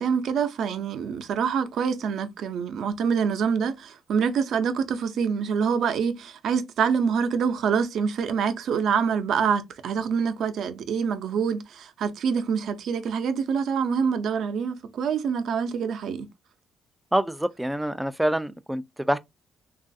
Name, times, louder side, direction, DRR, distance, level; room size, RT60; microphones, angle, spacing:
voice 1, 0.0-16.3, right 6 dB, 70° right, 0.5 m, -26 dB
voice 2, 17.1-19.2, right 1 dB, 5° right, 0.3 m, -26 dB
3.0 x 2.4 x 2.6 m
cardioid pair, 90°, 0 cm